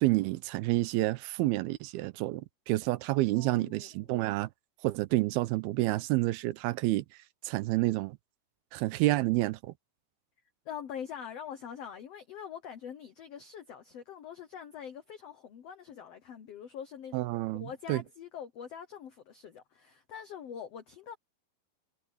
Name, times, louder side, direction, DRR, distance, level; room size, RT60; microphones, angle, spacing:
voice 1, 0.0-4.5 4.8-7.1 7.4-8.2 8.7-9.7 17.1-18.0, right 19 dB, 85° right, 2.6 m, -29 dB
voice 2, 3.3-3.9 10.6-17.3 17.5-21.1, left 8 dB, 80° left, 1.4 m, -44 dB
omnidirectional pair, 4.4 m